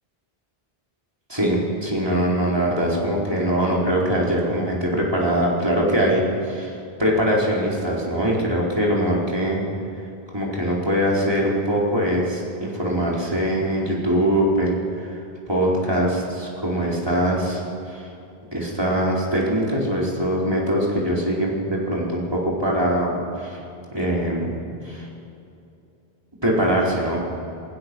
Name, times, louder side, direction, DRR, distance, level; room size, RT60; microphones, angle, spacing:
voice 1, 1.3-9.6 10.3-15.2 15.5-17.6 17.9-18.1 18.5-23.6 23.9-24.6 24.8-25.1 26.4-27.2, equal, 25° right, -4 dB, 4.6 m, -22 dB
27.5 x 16.0 x 6.3 m, 2.7 s
omnidirectional pair, 1.0 m